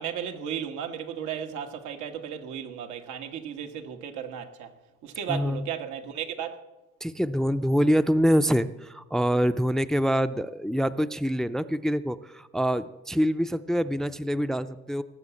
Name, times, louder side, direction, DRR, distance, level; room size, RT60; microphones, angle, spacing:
voice 1, 0.0-4.7 5.0-6.6, right 8 dB, 85° right, 1.5 m, -35 dB
voice 2, 5.3-5.6 7.0-15.0, equal, ahead, 0.4 m, -25 dB
18.5 x 6.9 x 8.3 m
cardioid pair, 110°, 29 cm